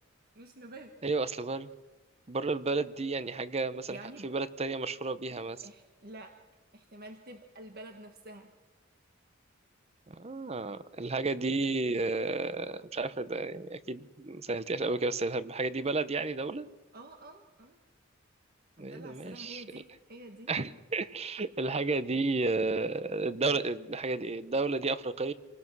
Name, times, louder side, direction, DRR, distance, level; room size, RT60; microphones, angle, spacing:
voice 1, 0.3-0.9 3.9-4.4 5.6-6.3 6.7-8.5 16.9-17.8 18.8-20.5, right 1 dB, 50° right, 4 dB, 1.5 m, -48 dB
voice 2, 1.0-1.7 2.3-5.7 10.1-16.7 18.8-19.6 20.5-25.3, right 3 dB, 30° right, 14 dB, 0.8 m, -32 dB
28.0 x 19.0 x 6.2 m, 1.2 s
head